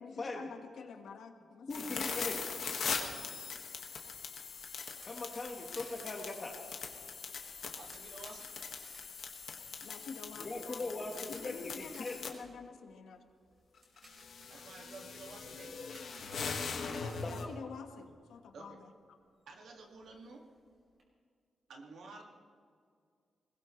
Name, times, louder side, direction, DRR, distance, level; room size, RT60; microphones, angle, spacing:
voice 1, 0.0-2.1 9.8-13.2 17.1-18.9, left 5 dB, 90° left, 5 dB, 1.4 m, -48 dB
sound 1, 1.7-12.3 13.8-17.4, left 5 dB, 60° left, 1.6 m, -41 dB
voice 2, 1.7-2.4 5.0-6.6 10.4-12.2 17.2-17.5, left 2 dB, 30° left, 1 dB, 1.4 m, -40 dB
sound 2, 4.6-18.3 18.6-18.7 19.1-19.2 19.5-21.0, right 1 dB, 40° right, 4.9 m, -62 dB
voice 3, 7.8-8.5 14.5-15.8 18.5-18.8 19.5-20.5 21.7-22.2, right 3 dB, 70° right, 1 dB, 2.0 m, -51 dB
22.0 x 20.0 x 3.2 m, 2.1 s
wide cardioid pair, 180°, 0 cm